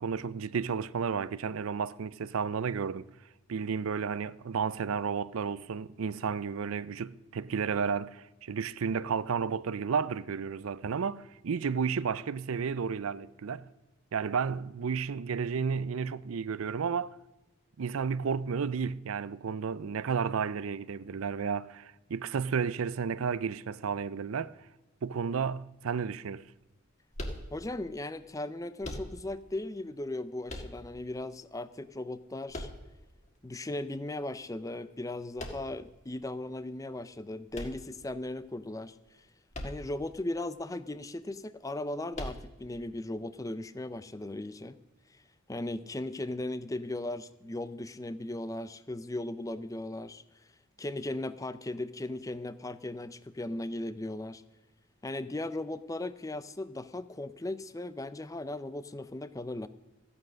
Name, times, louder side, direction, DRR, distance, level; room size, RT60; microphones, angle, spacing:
voice 1, 0.0-3.1 3.5-13.7 14.1-17.2 17.8-24.5 25.0-26.4, right 6 dB, 75° right, 0.5 m, -32 dB
sound 1, 27.1-27.9 28.8-29.5 30.5-31.2 32.5-33.3 35.4-35.9 37.5-38.4 39.5-40.1 40.4-40.5 42.1-42.8, left 1 dB, 35° left, 1.7 m, -41 dB
voice 2, 27.5-32.7 33.4-39.2 39.6-44.8 45.5-50.2 50.8-54.4 55.0-59.7, left 1 dB, 15° left, 0.5 m, -37 dB
14.5 x 9.7 x 6.4 m
head